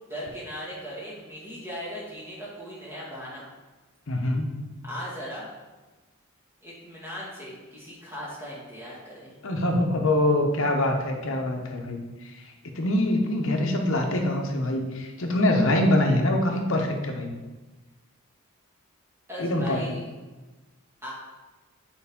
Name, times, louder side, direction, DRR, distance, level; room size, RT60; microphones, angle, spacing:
voice 1, 0.1-3.5 4.8-5.5 6.6-9.4 19.3-20.1 21.0-21.1, equal, 10° right, -7 dB, 1.8 m, -38 dB
voice 2, 4.1-4.6 9.4-17.3 19.4-19.9, left 1 dB, 65° left, 3 dB, 0.9 m, -24 dB
7.1 x 4.7 x 3.6 m, 1.2 s
head